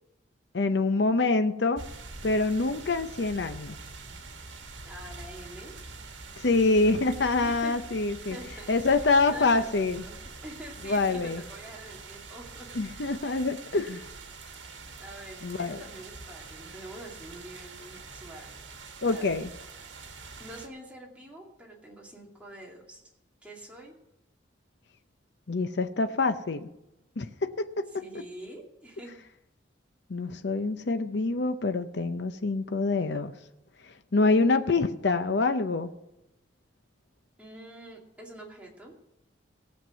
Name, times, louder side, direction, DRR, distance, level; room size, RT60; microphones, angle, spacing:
voice 1, 0.5-1.8 2.2-3.8 6.4-8.4 8.7-10.0 10.8-11.4 12.7-14.0 15.4-15.8 19.0-19.5 25.5-26.7 27.2-28.0 30.1-33.3 34.1-35.9, left 3 dB, 65° left, 9 dB, 0.7 m, -26 dB
sound 1, 1.7-20.7, right 3 dB, 75° right, 1.6 m, -45 dB
voice 2, 4.8-5.7 7.4-7.8 8.3-13.1 15.0-18.5 19.1-19.4 20.4-23.1 23.4-23.9 27.9-29.1 37.4-38.9, right 1 dB, 5° right, -2 dB, 2.5 m, -46 dB
17.5 x 7.4 x 6.2 m, 0.90 s
head